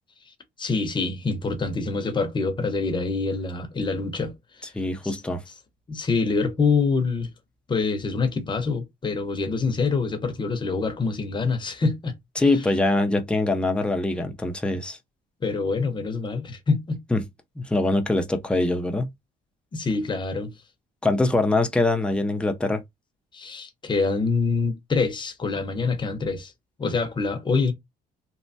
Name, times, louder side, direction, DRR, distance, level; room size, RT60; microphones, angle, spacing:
voice 1, 0.6-4.3 4.6-4.7 5.0-5.1 5.9-7.3 7.7-12.2 12.4-12.6 15.4-17.0 19.7-20.5 23.3-26.5 26.8-27.7, left 4 dB, 30° left, 0.8 m, -25 dB
voice 2, 4.7-5.4 12.4-15.0 17.1-17.2 17.6-19.1 21.0-22.8, left 2 dB, 5° left, 0.6 m, -23 dB
3.2 x 2.1 x 2.6 m
cardioid pair, 110°, 17 cm